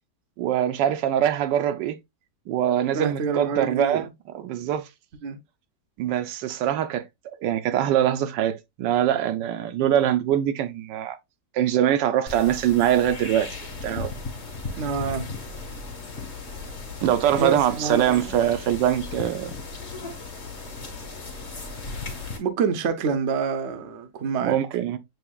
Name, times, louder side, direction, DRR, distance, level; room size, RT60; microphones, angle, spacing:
voice 1, 0.4-2.0 2.5-4.1 4.3-4.9 6.0-11.2 11.5-13.5 13.8-14.1 17.0-19.5 24.4-25.0, right 11 dB, 80° right, 1.2 m, -23 dB
voice 2, 2.9-4.0 5.2-5.4 14.8-15.3 17.4-18.4 22.4-24.6, right 5 dB, 55° right, 0.8 m, -27 dB
sound 1, 12.3-22.4, left 3 dB, 40° left, 1.7 m, -36 dB
7.8 x 2.8 x 2.3 m
omnidirectional pair, 1.9 m